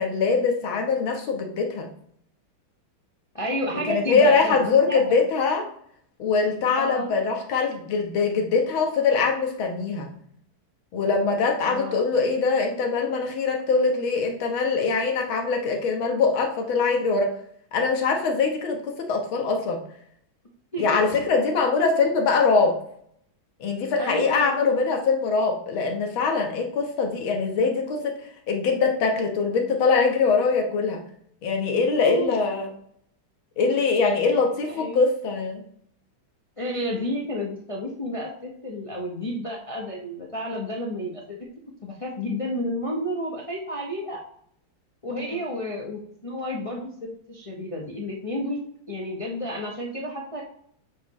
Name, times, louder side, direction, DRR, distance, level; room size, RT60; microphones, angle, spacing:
voice 1, 0.0-1.9 3.8-5.7 6.2-10.1 10.9-17.3 17.7-19.8 20.8-22.8 23.6-28.2 28.5-31.0 31.4-32.7 33.6-35.6 45.3-45.4, left 4 dB, 85° left, 2 dB, 2.0 m, -23 dB
voice 2, 3.3-5.0 6.7-7.1 11.7-12.1 20.7-20.8 24.0-24.6 31.9-32.3 34.2-34.4 34.7-35.0 36.6-41.4 41.8-44.2 45.0-48.6 48.9-50.4, equal, 30° left, -1 dB, 0.6 m, -31 dB
7.9 x 4.6 x 3.1 m, 0.65 s
omnidirectional pair, 2.2 m